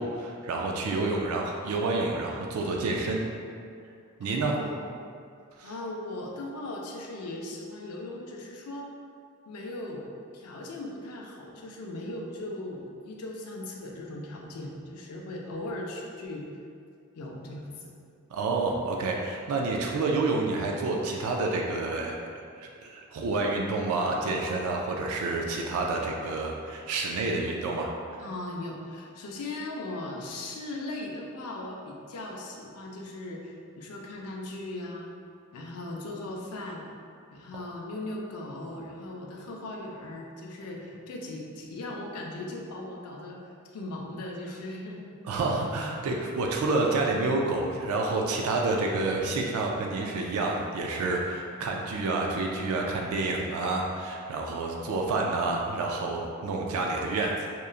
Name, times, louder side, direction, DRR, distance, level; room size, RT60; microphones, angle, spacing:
voice 1, 0.0-3.2 4.2-4.5 5.6-5.7 18.3-22.2 22.6-27.9 45.2-57.3, right 3 dB, 70° right, 1 dB, 0.3 m, -29 dB
voice 2, 4.2-4.8 5.6-8.9 9.5-10.1 10.3-16.4 17.1-17.9 27.3-27.6 28.2-35.1 35.5-36.9 37.3-45.2 45.6-45.7, left 2 dB, 85° left, -1 dB, 0.4 m, -38 dB
2.9 x 2.3 x 2.4 m, 2.3 s
head